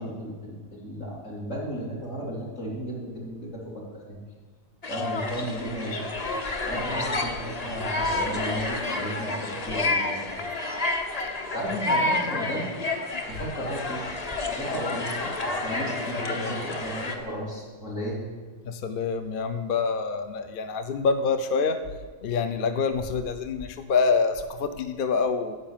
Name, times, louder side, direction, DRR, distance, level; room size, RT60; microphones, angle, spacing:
voice 1, 0.0-4.2 4.9-6.1 6.7-10.3 11.5-12.7 13.3-14.1 14.3-18.2, equal, 70° left, -5 dB, 3.3 m, -34 dB
sound 1, 4.8-17.1, left 2 dB, 35° left, 1.0 m, -30 dB
voice 2, 16.2-16.6 18.6-21.8 22.2-25.6, left 5 dB, 55° left, 9 dB, 0.7 m, -26 dB
9.8 x 7.7 x 7.3 m, 1.4 s
omnidirectional pair, 1.4 m